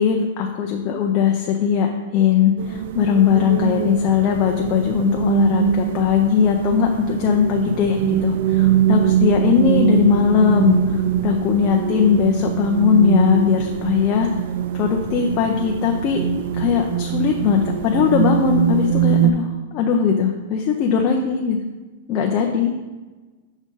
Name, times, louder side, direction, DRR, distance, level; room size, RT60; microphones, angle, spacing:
voice 1, 0.0-14.3 14.7-16.3 16.6-21.6 22.1-22.7, left 7 dB, 30° left, 1 dB, 0.5 m, -19 dB
sound 1, 2.6-19.3, right 10 dB, 55° right, 0.3 m, -22 dB
6.2 x 3.8 x 5.3 m, 1.2 s
supercardioid pair, 155°, 0 cm